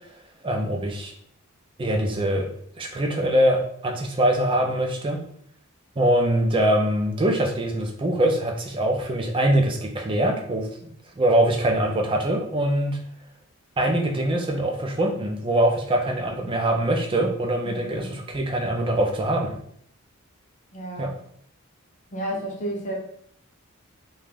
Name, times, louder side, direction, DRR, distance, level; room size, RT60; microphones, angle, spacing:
voice 1, 0.4-1.1 1.8-2.5 2.8-5.2 6.0-13.0 13.8-19.6 21.0-21.1, right 1 dB, 25° right, 2 dB, 0.4 m, -23 dB
voice 2, 17.6-18.2 20.7-21.1 22.1-23.0, right 1 dB, 35° left, -1 dB, 0.7 m, -32 dB
2.5 x 2.3 x 3.3 m, 0.66 s
head